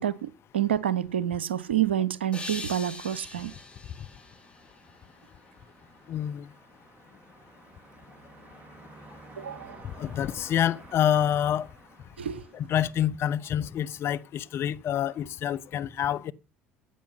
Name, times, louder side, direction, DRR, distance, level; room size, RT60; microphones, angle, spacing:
voice 1, 0.0-3.5 9.4-9.8 12.2-12.5, right 11 dB, 80° right, 0.7 m, -28 dB
sound 1, 2.3-5.5, left 2 dB, 20° left, 4.1 m, -42 dB
sound 2, 3.3-13.6, right 2 dB, 25° right, 4.8 m, -53 dB
voice 2, 6.1-6.5 9.8-11.7 12.5-16.3, left 10 dB, 45° left, 0.9 m, -27 dB
15.0 x 8.8 x 5.8 m
figure-of-eight pair, 60°, 6 cm